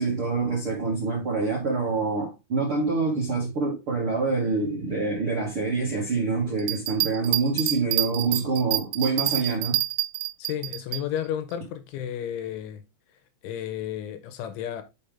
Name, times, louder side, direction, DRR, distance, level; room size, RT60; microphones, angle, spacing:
voice 1, 0.0-9.8, right 3 dB, 55° right, 1.5 m, -26 dB
Bell, 6.6-11.0 11.5-11.6, right 19 dB, 85° right, 3.2 m, -27 dB
voice 2, 10.4-12.8 13.4-14.8, left 10 dB, 85° left, 3.1 m, -32 dB
7.1 x 5.6 x 3.4 m
omnidirectional pair, 5.7 m